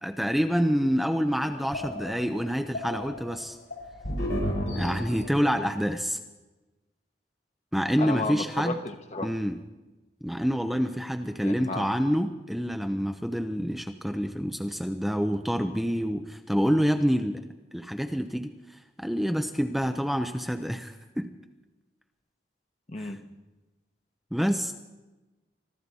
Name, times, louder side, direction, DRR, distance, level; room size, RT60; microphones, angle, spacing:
voice 1, 0.0-3.6 4.7-6.2 7.7-8.8 9.2-9.6 10.2-17.4 17.7-18.5 19.0-21.3 23.0-23.1 24.3-24.7, equal, ahead, 6 dB, 0.6 m, -27 dB
sound 1, 1.3-5.6, equal, 85° left, 7.1 m, -33 dB
voice 2, 8.0-9.3 11.4-11.9 22.9-23.2, left 2 dB, 40° left, 7 dB, 1.1 m, -33 dB
24.5 x 13.0 x 4.2 m, 1.1 s
head